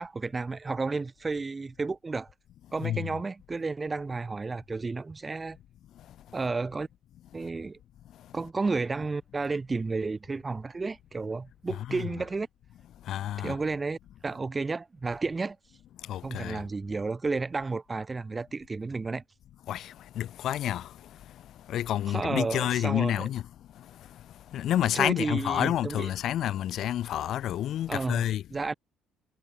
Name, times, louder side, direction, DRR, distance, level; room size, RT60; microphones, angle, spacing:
voice 1, 0.0-2.3 2.7-5.6 6.3-6.9 7.3-7.8 8.3-12.5 13.4-14.0 14.2-15.6 16.2-19.2 22.1-23.3 24.9-26.1 27.9-28.2 28.5-28.7, right 3 dB, 25° right, 2.0 m, -32 dB
voice 2, 13.1-13.5 16.1-16.6 19.7-19.8 20.2-20.8 21.7-23.4 24.5-28.4, left 12 dB, 60° left, 2.4 m, -29 dB
hypercardioid pair, 50°, 0 cm